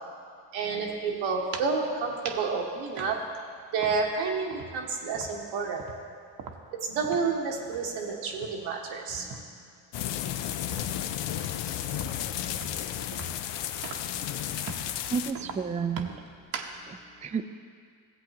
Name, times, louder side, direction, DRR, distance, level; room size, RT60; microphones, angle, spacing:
voice 1, 0.5-3.2 3.7-5.8 6.8-9.5 14.0-14.6 15.5-15.7 16.0-16.2 16.8-17.2, right 4 dB, 85° right, 0 dB, 1.3 m, -30 dB
sound 1, 1.3-1.8 2.2-2.5 2.9-4.2 4.5-7.4 7.6-7.9 8.3-9.6 10.0-14.2 14.6-15.0 15.3-16.8, right 5 dB, 50° right, 0.9 m, -42 dB
sound 2, 9.9-15.3, left 11 dB, 70° left, 0.6 m, -33 dB
voice 2, 15.1-16.1 16.9-17.4, right 6 dB, 15° right, 8 dB, 0.4 m, -31 dB
15.0 x 7.9 x 2.9 m, 2.1 s
supercardioid pair, 60°, 45 cm